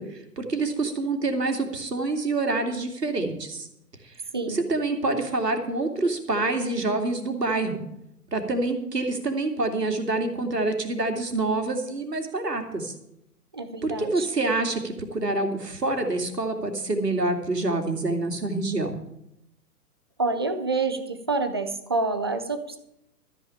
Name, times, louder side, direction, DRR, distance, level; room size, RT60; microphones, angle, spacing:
voice 1, 0.0-3.7 4.0-4.1 4.5-7.8 8.3-12.9 13.8-18.9, right 2 dB, 80° right, 5 dB, 2.5 m, -27 dB
voice 2, 4.3-4.6 13.5-14.3 20.2-22.8, right 3 dB, 15° right, 8 dB, 0.4 m, -27 dB
13.0 x 6.2 x 8.7 m, 0.80 s
figure-of-eight pair, 120°, 48 cm